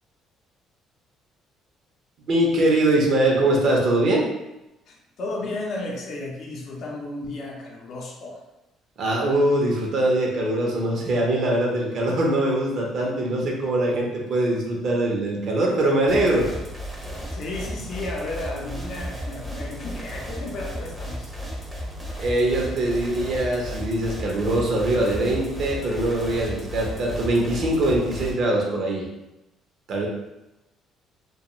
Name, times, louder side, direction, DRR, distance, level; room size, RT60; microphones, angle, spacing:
voice 1, 2.3-4.3 9.0-16.5 22.2-29.1 29.9-30.1, right 1 dB, 60° right, -1 dB, 0.6 m, -22 dB
voice 2, 4.9-8.4 17.2-21.3, left 2 dB, 60° left, -1 dB, 0.6 m, -33 dB
sound 1, 16.1-28.3, equal, 5° right, 0.6 m, -34 dB
2.3 x 2.2 x 2.9 m, 0.95 s
cardioid pair, 95°, 0 cm